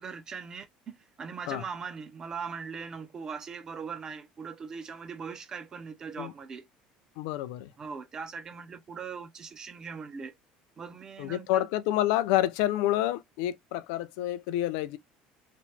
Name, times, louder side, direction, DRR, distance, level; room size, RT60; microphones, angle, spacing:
voice 1, 0.0-6.7 7.8-10.3 10.8-11.7, right 5 dB, 20° right, 0.4 m, -40 dB
voice 2, 7.2-7.7 11.2-15.0, left 14 dB, 80° left, 0.4 m, -28 dB
2.9 x 2.0 x 3.1 m
cardioid pair, 175°, 3 cm